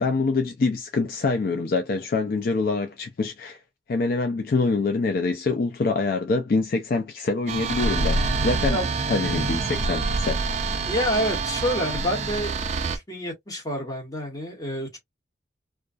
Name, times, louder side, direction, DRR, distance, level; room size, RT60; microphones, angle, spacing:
voice 1, 0.0-3.6 3.9-8.8 9.1-10.4, left 3 dB, 50° left, 0.3 m, -25 dB
sound 1, 7.5-13.0, right 3 dB, 35° right, 0.3 m, -26 dB
voice 2, 10.9-12.5 12.9-15.0, equal, 20° left, 1.1 m, -28 dB
2.3 x 2.2 x 2.4 m
head